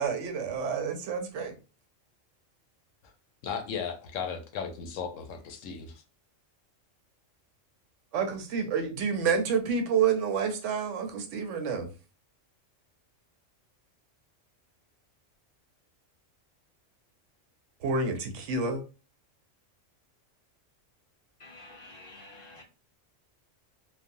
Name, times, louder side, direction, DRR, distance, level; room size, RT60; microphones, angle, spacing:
voice 1, 0.0-1.6 8.1-11.9 17.8-18.8, right 5 dB, 75° right, 0.9 m, -29 dB
voice 2, 3.4-6.0, left 6 dB, 80° left, 1.0 m, -36 dB
voice 3, 21.4-22.6, left 2 dB, 45° left, 0.9 m, -49 dB
3.2 x 2.1 x 2.5 m
omnidirectional pair, 1.3 m